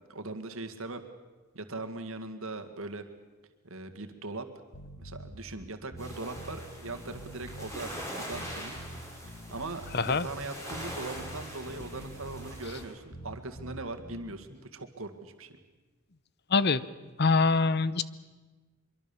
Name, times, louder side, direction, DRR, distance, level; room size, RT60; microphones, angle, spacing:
voice 1, 0.1-1.0 1.5-3.0 3.6-4.5 5.0-8.8 9.5-15.6, right 2 dB, 65° right, 8 dB, 2.1 m, -40 dB
sound 1, 4.7-14.3, right 1 dB, 60° left, 1.9 m, -45 dB
sound 2, 6.0-12.8, equal, 15° left, 5.4 m, -43 dB
voice 2, 9.9-10.3 16.5-16.8 17.2-18.0, left 4 dB, 45° left, 16 dB, 0.7 m, -24 dB
24.0 x 23.5 x 7.1 m, 1.3 s
head